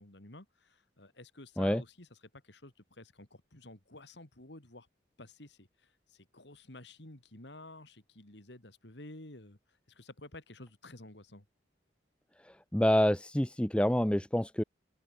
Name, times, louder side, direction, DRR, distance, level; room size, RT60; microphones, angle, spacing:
voice 1, 0.0-4.9 5.2-9.6 9.9-11.4, left 2 dB, 70° left, 3.3 m, -51 dB
voice 2, 12.5-14.6, equal, 5° left, 0.5 m, -27 dB
head